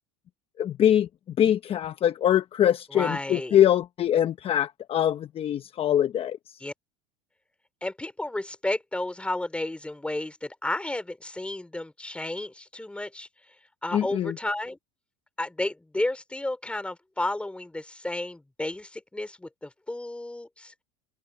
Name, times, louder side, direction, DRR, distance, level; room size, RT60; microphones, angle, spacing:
voice 1, 0.6-1.1 1.4-6.4 13.9-14.3, left 10 dB, 40° left, 1.0 m, -23 dB
voice 2, 2.9-3.6 6.6-6.7 7.8-13.3 13.8-14.8 15.4-20.7, left 2 dB, 5° left, 4.0 m, -32 dB
supercardioid pair, 100°, 16 cm